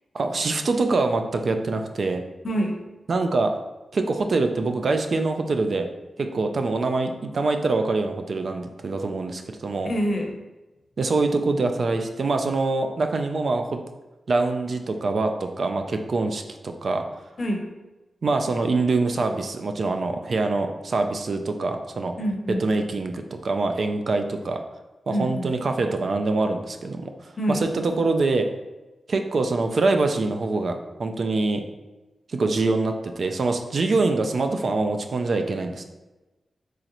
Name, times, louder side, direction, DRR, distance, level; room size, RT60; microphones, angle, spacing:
voice 1, 0.1-2.2 3.1-3.5 3.9-5.9 6.2-9.9 11.0-13.8 14.3-17.0 18.2-22.1 22.5-24.6 25.1-28.5 29.1-31.6 32.3-35.8, right 3 dB, 60° right, 5 dB, 0.3 m, -24 dB
voice 2, 2.4-2.8 9.8-10.4 17.4-17.7 22.2-22.7 25.1-25.5 27.4-27.7, equal, 50° left, 2 dB, 0.7 m, -26 dB
3.8 x 3.1 x 2.9 m, 1.1 s
cardioid pair, 75°, 0 cm